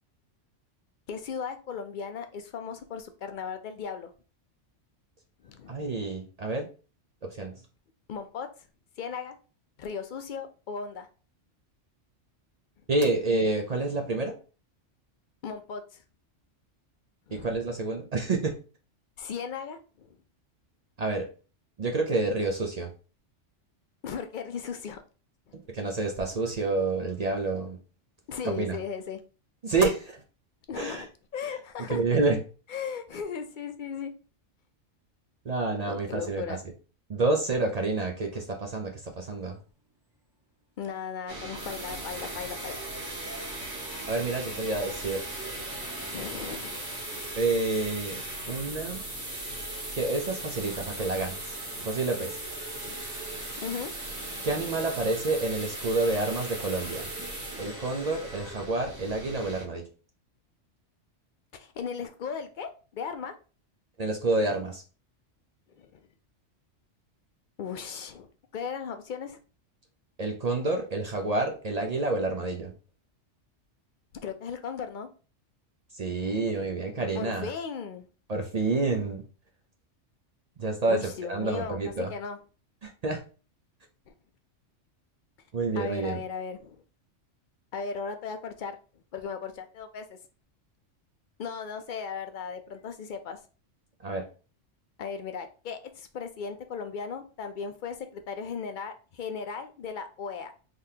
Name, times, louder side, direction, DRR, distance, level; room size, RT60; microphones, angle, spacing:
voice 1, 1.1-4.1 5.4-5.8 8.1-8.5 9.0-9.4 9.8-11.1 15.4-16.0 17.3-17.5 19.2-20.2 24.0-25.0 28.3-29.2 30.7-32.0 32.7-34.1 35.9-36.6 40.8-43.0 46.1-46.9 48.6-48.7 52.8-53.0 53.6-53.9 61.5-63.3 65.8-66.0 67.6-69.4 74.2-75.1 76.1-76.5 77.1-78.1 80.9-82.4 85.7-86.8 87.7-88.7 89.1-90.2 91.4-93.4 95.0-100.5, left 6 dB, 60° left, 0.5 m, -37 dB
voice 2, 5.7-6.7 7.2-7.6 12.9-14.3 17.3-18.6 21.0-21.3 21.8-22.9 25.7-27.8 28.4-28.8 29.6-30.2 30.7-31.1 31.9-32.4 35.4-36.6 37.1-39.6 44.1-45.3 47.3-49.0 50.0-51.6 51.8-52.4 54.4-57.1 57.6-59.9 64.0-64.8 70.2-72.7 75.9-77.5 78.3-79.2 80.6-82.1 82.8-83.2 85.5-86.2 94.0-94.3, right 3 dB, 50° right, 0.5 m, -28 dB
sound 1, 41.3-59.6, right 1 dB, 80° right, 1.9 m, -41 dB
sound 2, 41.5-58.6, right 1 dB, 20° right, 0.9 m, -40 dB
3.8 x 3.4 x 2.7 m
omnidirectional pair, 1.3 m